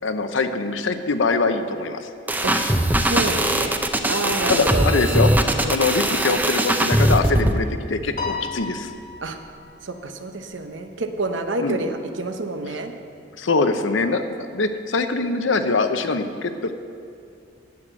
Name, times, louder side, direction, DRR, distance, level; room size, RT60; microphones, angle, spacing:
voice 1, 0.0-2.1 4.5-5.3 5.7-8.9 11.6-11.8 13.4-14.2 14.5-16.7, left 3 dB, 85° left, 8 dB, 0.8 m, -23 dB
sound 1, 2.3-7.6, right 1 dB, 10° right, 0.5 m, -20 dB
voice 2, 3.1-3.8 4.1-4.9 5.6-5.8 9.2-9.4 9.8-12.9, right 2 dB, 80° right, 6 dB, 0.9 m, -28 dB
Piano, 8.2-10.7, left 4 dB, 45° left, 1.4 m, -34 dB
9.5 x 7.8 x 7.7 m, 2.3 s
head